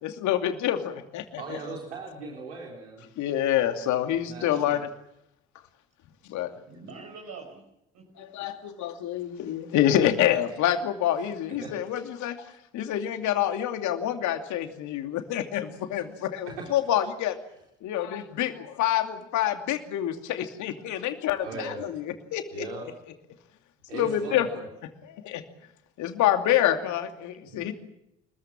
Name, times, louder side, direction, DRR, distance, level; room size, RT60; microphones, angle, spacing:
voice 1, 0.0-1.6 3.2-4.9 6.3-6.5 8.2-12.5 12.7-17.4 17.8-22.7 23.9-24.5 24.8-25.4 26.0-27.7, left 11 dB, 55° left, 7 dB, 2.7 m, -27 dB
voice 2, 1.4-3.0 4.2-4.8 11.6-11.7 16.5-16.7 21.4-21.8 22.5-22.8 23.9-24.6, right 3 dB, 80° right, -1 dB, 4.1 m, -38 dB
voice 3, 6.5-7.6 7.9-8.2 27.5-27.7, right 4 dB, 55° right, 1 dB, 5.8 m, -45 dB
25.5 x 21.5 x 7.4 m, 0.82 s
figure-of-eight pair, 50°, 34 cm